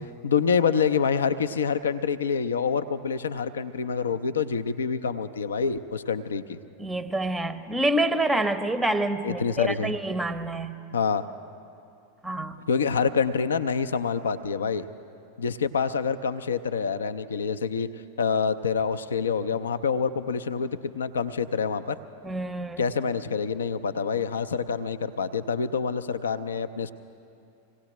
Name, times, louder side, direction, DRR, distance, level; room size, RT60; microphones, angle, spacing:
voice 1, 0.2-6.6 9.2-10.0 10.9-11.2 12.7-14.8 15.4-17.9 18.2-22.0 22.8-26.9, left 6 dB, 70° left, 11 dB, 0.5 m, -26 dB
voice 2, 6.8-10.7 12.2-12.6 22.2-22.8, right 1 dB, 5° right, 11 dB, 0.7 m, -27 dB
26.0 x 17.5 x 3.0 m, 2.6 s
figure-of-eight pair, 90°, 0 cm